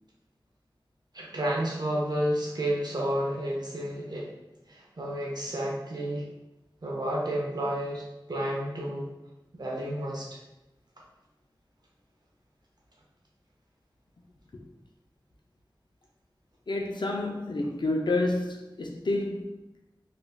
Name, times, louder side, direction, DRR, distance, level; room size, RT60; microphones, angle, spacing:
voice 1, 1.1-4.3 4.7-6.3 6.8-9.1 9.5-10.4, right 1 dB, 55° right, 0.5 m, -31 dB
voice 2, 16.7-19.5, left 2 dB, 65° left, 0.4 m, -29 dB
3.2 x 2.4 x 2.2 m
wide cardioid pair, 55°, 8 cm